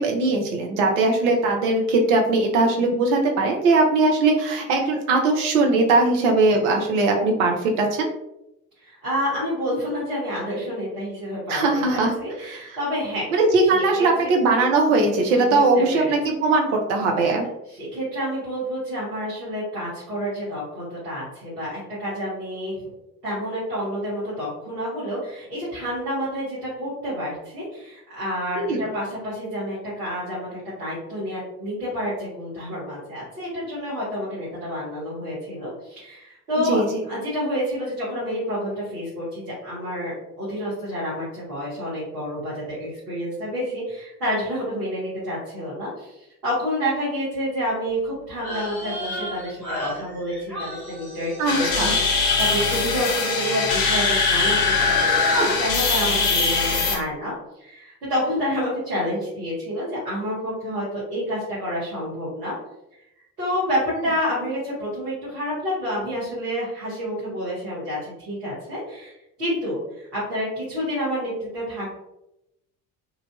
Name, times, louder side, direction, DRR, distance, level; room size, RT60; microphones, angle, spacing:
voice 1, 0.0-8.1 11.5-12.1 12.4-12.8 13.3-17.5 28.6-28.9 36.6-36.9 51.4-51.9, right 3 dB, 60° right, 2 dB, 0.7 m, -20 dB
voice 2, 8.8-13.3 13.7-14.3 15.3-16.2 17.7-22.8 23.2-36.8 37.1-55.2 55.6-57.3 57.6-62.5 63.4-69.1 69.4-71.9, equal, 80° right, -9 dB, 1.1 m, -29 dB
sound 1, 48.3-54.0 54.2-54.9 55.2-55.5, equal, 5° left, 1.4 m, -34 dB
sound 2, 51.5-57.0, left 4 dB, 50° left, 0.8 m, -21 dB
3.1 x 2.4 x 2.3 m, 0.87 s
figure-of-eight pair, 55°, 47 cm